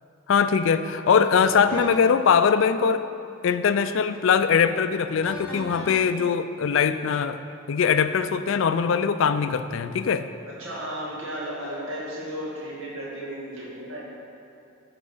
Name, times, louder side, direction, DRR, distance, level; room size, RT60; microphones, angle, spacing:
voice 1, 0.3-3.1 3.4-7.4 7.7-10.3, left 6 dB, 65° left, 11 dB, 0.3 m, -21 dB
sound 1, 1.4-2.2 5.2-6.0, equal, 5° left, 1.4 m, -38 dB
voice 2, 10.5-14.0, equal, 80° right, -5 dB, 2.1 m, -34 dB
14.0 x 4.7 x 3.9 m, 2.5 s
head